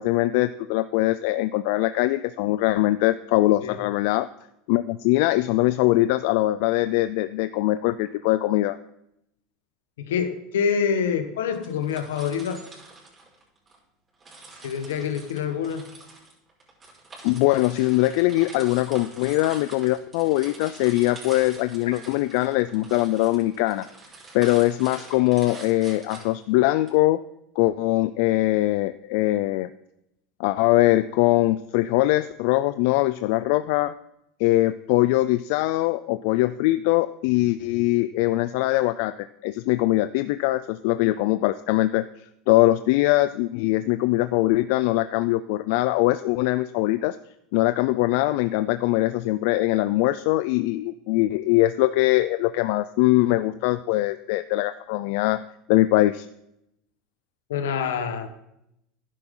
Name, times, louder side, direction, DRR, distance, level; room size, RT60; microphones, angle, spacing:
voice 1, 0.0-4.3 4.7-8.8 17.2-23.9 24.3-27.2 27.6-29.7 30.4-33.9 34.4-47.2 47.5-55.4 55.7-56.3, left 17 dB, 70° left, 13 dB, 0.4 m, -22 dB
voice 2, 10.0-12.6 14.6-15.8 57.5-58.3, left 7 dB, 90° left, 8 dB, 1.3 m, -26 dB
sound 1, 11.5-13.8 14.2-26.9, right 3 dB, 25° right, 5.4 m, -45 dB
11.5 x 10.0 x 3.8 m, 0.80 s
supercardioid pair, 110°, 0 cm